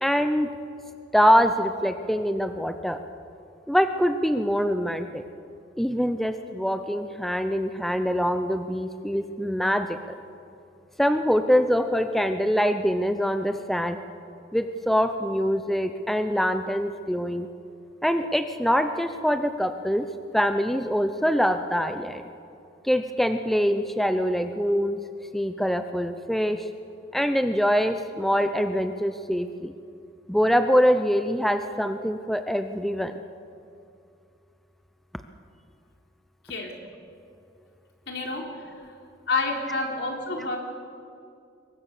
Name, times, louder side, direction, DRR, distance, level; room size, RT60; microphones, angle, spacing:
voice 1, 0.0-0.5 1.1-3.0 3.7-5.2 5.8-10.2 11.0-14.0 14.5-17.5 18.0-20.1 20.3-22.2 22.8-25.0 25.3-26.7 27.1-29.7 30.3-33.2, equal, ahead, 8 dB, 0.7 m, -24 dB
voice 2, 38.1-38.5 38.7-38.8 39.3-40.6, left 3 dB, 65° left, 1 dB, 3.8 m, -28 dB
26.5 x 22.5 x 6.7 m, 2.5 s
head